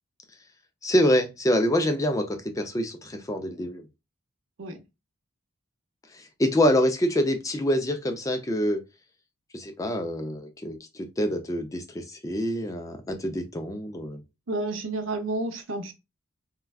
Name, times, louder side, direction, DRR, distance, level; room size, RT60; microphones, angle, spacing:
voice 1, 0.8-3.8 6.1-8.8 9.5-14.2, equal, 15° left, 0.3 m, -26 dB
voice 2, 14.5-15.9, right 2 dB, 65° right, 0.6 m, -30 dB
3.4 x 2.2 x 2.2 m
head